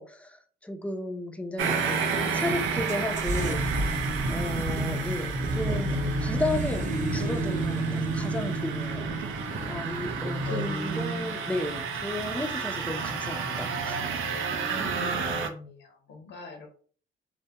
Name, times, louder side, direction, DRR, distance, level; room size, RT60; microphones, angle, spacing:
voice 1, 0.0-2.0 2.3-3.7 4.3-9.1 9.7-14.0, left 2 dB, 5° left, 4 dB, 0.4 m, -34 dB
sound 1, 1.6-15.5, right 5 dB, 85° right, 0.5 m, -31 dB
sound 2, 2.9-15.1, right 1 dB, 40° right, 0.6 m, -32 dB
voice 2, 10.4-11.0 14.7-16.7, left 4 dB, 65° left, 4 dB, 0.7 m, -42 dB
2.2 x 2.1 x 2.7 m, 0.43 s
cardioid pair, 90°, 20 cm